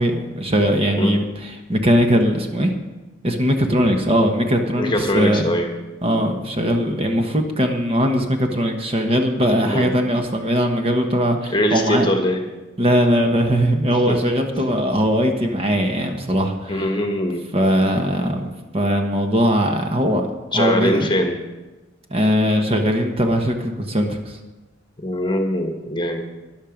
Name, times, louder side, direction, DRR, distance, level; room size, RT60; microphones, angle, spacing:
voice 1, 0.0-2.7 3.2-5.4 6.0-12.1 12.8-16.8 17.5-20.3 20.5-21.1 22.1-24.4, equal, 30° right, 4 dB, 1.2 m, -20 dB
voice 2, 4.8-5.7 9.6-9.9 11.5-12.4 13.9-14.2 16.7-17.4 20.5-21.3 25.0-26.2, left 1 dB, 25° left, 4 dB, 1.3 m, -22 dB
13.0 x 10.5 x 5.1 m, 1.1 s
head